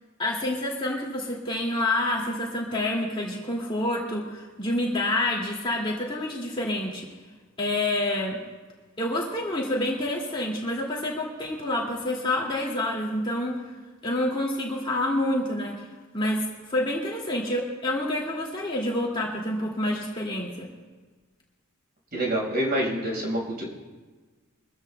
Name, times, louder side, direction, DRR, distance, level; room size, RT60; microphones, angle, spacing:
voice 1, 0.2-7.1 7.6-8.4 9.0-13.6 14.0-15.9 16.1-20.7, left 1 dB, 25° left, -3 dB, 2.4 m, -28 dB
voice 2, 22.1-23.6, right 1 dB, 45° right, -2 dB, 5.2 m, -27 dB
23.5 x 14.5 x 2.3 m, 1.4 s
head